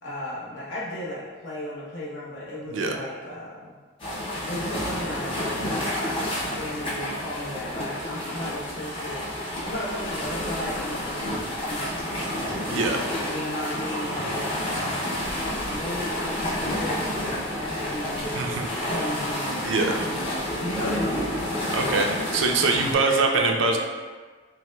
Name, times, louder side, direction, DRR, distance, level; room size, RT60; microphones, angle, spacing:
voice 1, 0.0-3.7 4.5-9.3 9.6-12.0 13.3-15.2 15.6-20.1 20.4-22.0 22.9-23.8, left 1 dB, 70° left, -6 dB, 0.9 m, -35 dB
voice 2, 2.7-3.0 12.7-13.0 18.4-18.6 19.6-19.9 21.7-23.8, right 3 dB, 65° right, 2 dB, 0.4 m, -23 dB
sound 1, 4.0-22.9, left 1 dB, 25° left, 0.5 m, -30 dB
5.6 x 2.0 x 2.2 m, 1.5 s
head